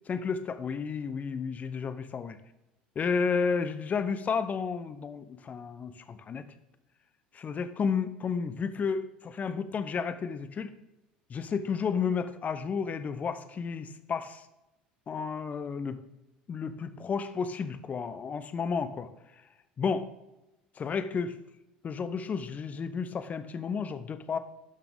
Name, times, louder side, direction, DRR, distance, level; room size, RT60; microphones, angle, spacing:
voice 1, 0.1-2.4 3.0-6.5 7.3-10.7 11.3-14.4 15.1-16.0 16.5-19.1 19.8-20.1 20.8-21.3 21.8-24.4, left 5 dB, 35° left, 11 dB, 0.9 m, -32 dB
12.0 x 5.8 x 3.6 m, 0.96 s
hypercardioid pair, 70°, 4 cm